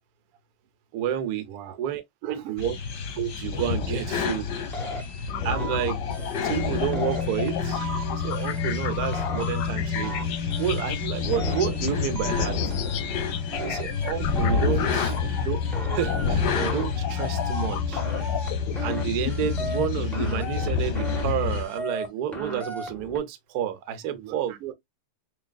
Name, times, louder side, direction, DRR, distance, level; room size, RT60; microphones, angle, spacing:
voice 1, 0.9-1.5 1.8-2.7 3.2-4.6 5.4-6.0 6.4-7.8 8.1-12.8 13.0-13.1 13.6-15.1 15.4-15.6 15.9-18.0 18.8-24.6, right 9 dB, 70° right, 0.9 m, -30 dB
voice 2, 2.2-2.7 5.1-5.2 13.4-13.6 14.6-15.2 24.0-24.7, right 11 dB, 85° right, 1.6 m, -40 dB
sound 1, 2.6-21.6, left 5 dB, 60° left, 1.3 m, -28 dB
sound 2, 4.7-5.8 6.1-6.7 6.9-8.0 8.3-8.9 9.1-10.2 10.5-11.1 11.3-12.4 12.7-13.3 13.5-14.6 14.9-15.5 15.7-16.8 17.1-17.7 17.9-19.0 19.3-19.9 20.1-21.2 21.5-22.1 22.3-23.2, right 1 dB, ahead, 0.4 m, -37 dB
sound 3, 5.3-20.3, left 10 dB, 80° left, 1.4 m, -35 dB
3.9 x 3.6 x 2.3 m
omnidirectional pair, 2.4 m